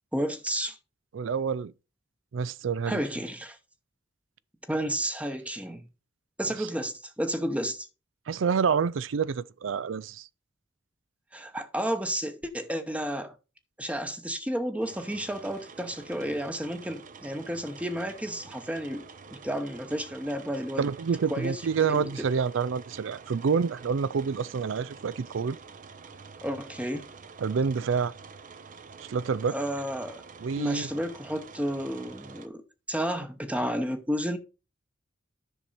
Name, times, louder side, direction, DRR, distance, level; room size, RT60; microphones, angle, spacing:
voice 1, 0.1-0.8 2.9-3.6 4.7-5.9 6.4-7.9 11.3-13.3 13.8-20.9 21.3-22.1 26.4-27.1 29.5-30.2 30.6-32.6 32.9-34.4, equal, 5° right, 0.9 m, -32 dB
voice 2, 1.1-1.7 2.3-3.0 8.3-10.3 20.8-25.6 27.4-28.1 29.0-29.5 30.4-30.9, right 6 dB, 80° right, 0.4 m, -28 dB
sound 1, 14.8-32.5, right 5 dB, 45° right, 0.7 m, -48 dB
10.0 x 6.0 x 4.1 m
head